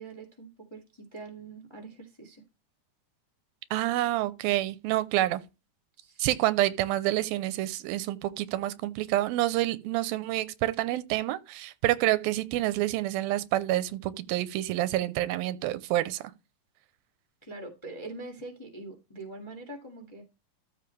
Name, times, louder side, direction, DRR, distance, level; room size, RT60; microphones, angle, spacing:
voice 1, 0.0-2.4 6.0-6.3 17.4-20.2, right 2 dB, 15° left, 1.1 m, -43 dB
voice 2, 3.7-5.4 6.2-16.3, right 15 dB, 85° right, 2.4 m, -28 dB
13.5 x 5.0 x 3.3 m
omnidirectional pair, 4.2 m